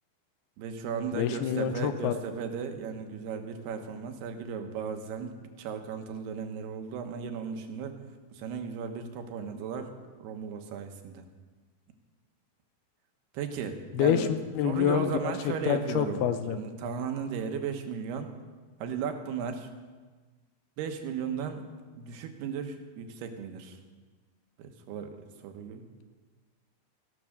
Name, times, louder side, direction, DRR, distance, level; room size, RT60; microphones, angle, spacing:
voice 1, 0.6-8.0 8.3-9.9 10.2-11.3 13.3-14.3 14.6-18.3 18.8-19.7 20.8-21.7 22.0-23.8 24.6-25.2 25.4-25.9, right 6 dB, 90° right, 6 dB, 3.2 m, -36 dB
voice 2, 1.1-2.1 13.9-14.3 14.6-15.2 15.5-16.6, left 9 dB, 85° left, 9 dB, 2.8 m, -27 dB
15.5 x 11.0 x 6.5 m, 1.4 s
omnidirectional pair, 4.5 m